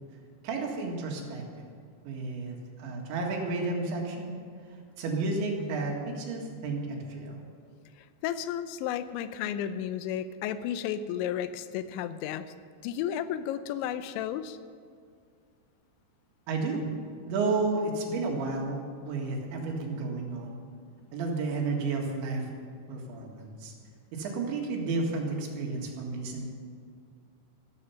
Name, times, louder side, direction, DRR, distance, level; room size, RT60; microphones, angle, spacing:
voice 1, 0.4-1.7 2.0-4.4 5.0-7.4 16.5-16.9 17.3-18.8 19.1-20.6 21.1-22.5 22.9-23.7 24.1-26.5, right 3 dB, 80° right, 0 dB, 4.2 m, -32 dB
voice 2, 8.2-12.5 12.8-14.6, left 10 dB, 90° left, 12 dB, 3.0 m, -33 dB
14.0 x 14.0 x 5.7 m, 2.2 s
omnidirectional pair, 5.2 m